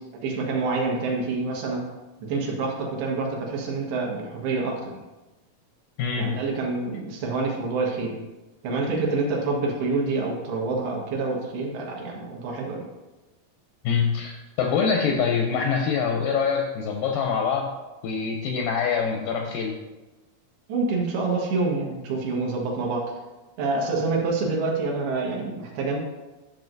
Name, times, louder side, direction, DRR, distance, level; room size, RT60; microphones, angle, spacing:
voice 1, 0.2-1.8 2.2-4.9 6.2-8.1 8.6-12.8 20.7-23.0 23.6-26.0, right 3 dB, 85° right, -2 dB, 3.4 m, -27 dB
voice 2, 6.0-6.4 13.8-17.7 18.0-19.8, left 6 dB, 80° left, 3 dB, 2.0 m, -25 dB
11.5 x 6.1 x 2.6 m, 1.1 s
omnidirectional pair, 4.5 m